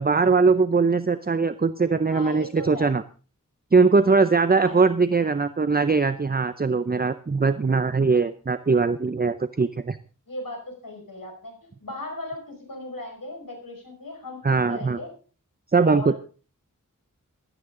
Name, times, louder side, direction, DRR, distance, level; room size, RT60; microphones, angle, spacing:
voice 1, 0.0-3.0 3.7-10.0 14.4-15.0 15.7-16.2, right 4 dB, 30° right, 12 dB, 0.6 m, -21 dB
voice 2, 2.1-2.9 4.5-4.8 10.3-15.1 15.8-16.2, left 2 dB, 80° left, 2 dB, 5.4 m, -37 dB
16.0 x 12.5 x 3.8 m, 0.38 s
wide cardioid pair, 65°, 33 cm